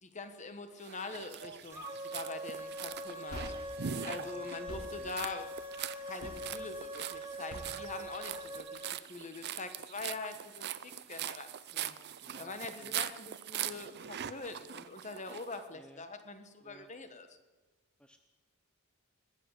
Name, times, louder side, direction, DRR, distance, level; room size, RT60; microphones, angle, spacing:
voice 1, 0.0-3.8 4.0-5.6 6.0-11.5 11.7-11.9 12.4-17.3, left 3 dB, 35° left, 8 dB, 1.3 m, -44 dB
sound 1, 0.8-15.6, right 10 dB, 50° right, 0.5 m, -42 dB
sound 2, 1.7-8.9, equal, 10° right, 2.0 m, -43 dB
sound 3, 2.5-8.7, equal, 70° left, 6.8 m, -48 dB
voice 2, 12.2-12.9 15.7-16.1 16.6-16.9 18.0-18.2, equal, 5° left, 6 dB, 0.6 m, -57 dB
20.5 x 8.2 x 8.0 m, 1.3 s
head